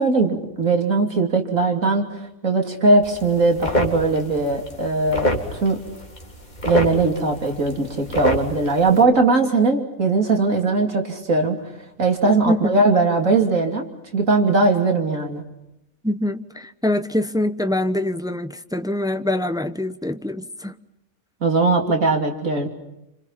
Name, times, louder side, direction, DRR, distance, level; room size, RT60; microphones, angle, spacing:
voice 1, 0.0-5.3 5.6-5.8 6.7-11.6 12.0-13.8 14.1-15.4 21.4-22.7, right 3 dB, 75° right, 3.3 m, -19 dB
sound 1, 3.0-9.0, equal, 35° left, 3.4 m, -27 dB
voice 2, 16.0-20.8, left 1 dB, 5° right, 0.9 m, -24 dB
28.5 x 27.0 x 5.8 m
omnidirectional pair, 1.4 m